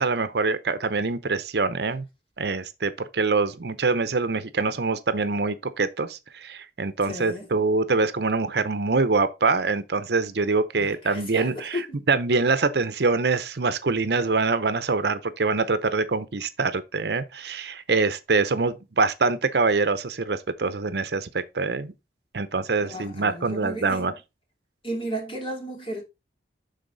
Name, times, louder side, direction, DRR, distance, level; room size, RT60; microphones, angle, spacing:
voice 1, 0.0-2.0 2.4-21.9 22.3-24.1, right 4 dB, 65° right, 0.7 m, -24 dB
voice 2, 7.1-7.5 10.7-12.0 22.8-24.1 24.8-26.0, equal, 30° left, 2.9 m, -34 dB
11.5 x 4.0 x 4.0 m
head